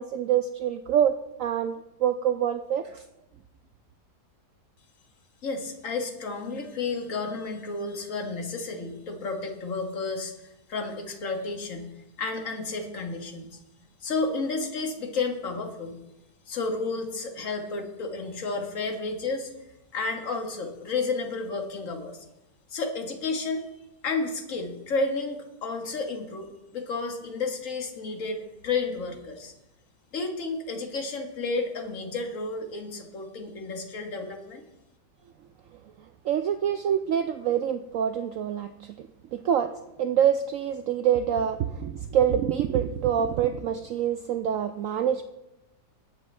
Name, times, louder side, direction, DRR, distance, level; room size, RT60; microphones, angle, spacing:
voice 1, 0.0-1.8 2.0-3.0 36.2-38.7 39.3-39.7 40.0-45.2, right 9 dB, 85° right, 8 dB, 0.7 m, -25 dB
voice 2, 5.4-13.6 14.0-16.0 16.5-19.5 19.9-22.2 22.7-26.5 26.7-29.5 30.1-34.6, left 3 dB, 50° left, 3 dB, 1.7 m, -31 dB
20.5 x 7.7 x 3.3 m, 0.94 s
omnidirectional pair, 1.9 m